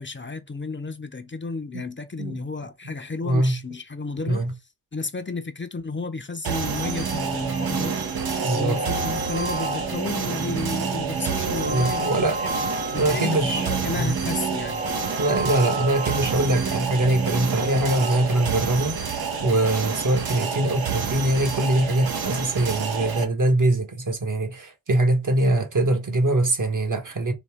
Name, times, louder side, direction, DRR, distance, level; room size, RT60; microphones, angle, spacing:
voice 1, 0.0-4.5 4.9-8.0 8.5-12.1 12.4-12.6 12.9-14.8, left 3 dB, 35° left, 0.6 m, -32 dB
voice 2, 3.2-3.6 4.3-4.5 8.4-8.8 11.6-12.4 13.0-13.7 14.0-14.2 15.2-27.3, right 1 dB, 60° right, 1.2 m, -23 dB
sound 1, 6.4-23.2, right 6 dB, 85° right, 0.8 m, -29 dB
sound 2, 6.8-18.1, right 3 dB, 25° right, 0.3 m, -31 dB
4.1 x 2.8 x 3.5 m
cardioid pair, 40°, 36 cm